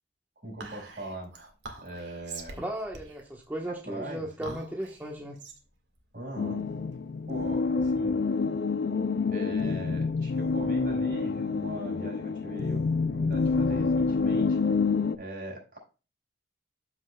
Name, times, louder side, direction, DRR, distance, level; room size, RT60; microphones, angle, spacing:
voice 1, 0.4-1.3 1.8-2.6 3.6-4.6 6.1-6.7 7.3-8.2 9.3-14.6 15.2-15.8, right 1 dB, 55° right, 0 dB, 5.0 m, -40 dB
Whispering, 0.6-7.3, right 4 dB, 90° right, 1.9 m, -46 dB
voice 2, 2.6-5.4, right 1 dB, 10° right, 0 dB, 1.1 m, -36 dB
sound 1, 6.4-15.2, left 4 dB, 60° left, 0.5 m, -27 dB
13.5 x 5.4 x 2.3 m, 0.32 s
head